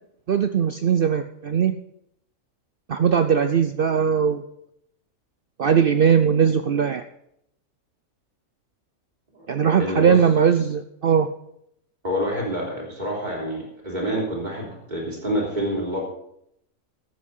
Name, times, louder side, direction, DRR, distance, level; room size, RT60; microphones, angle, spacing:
voice 1, 0.3-1.7 2.9-4.4 5.6-7.0 9.5-11.3, right 7 dB, 60° right, 10 dB, 0.6 m, -19 dB
voice 2, 9.8-10.2 12.0-16.0, equal, 30° right, -1 dB, 3.3 m, -27 dB
13.5 x 8.4 x 5.5 m, 0.74 s
omnidirectional pair, 1.5 m